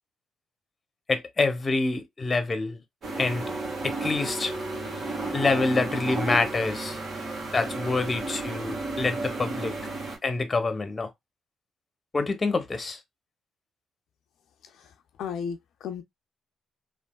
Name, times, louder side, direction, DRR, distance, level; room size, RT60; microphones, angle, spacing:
voice 1, 1.1-2.8 3.2-3.5 3.8-4.5 5.3-7.0 7.5-9.7 10.2-11.1 12.1-13.0, left 3 dB, 30° left, 0.7 m, -26 dB
sound 1, 3.0-10.2, right 2 dB, 50° right, 1.4 m, -33 dB
voice 2, 15.2-16.0, left 7 dB, 75° left, 0.4 m, -34 dB
3.3 x 2.4 x 2.2 m
cardioid pair, 90°, 0 cm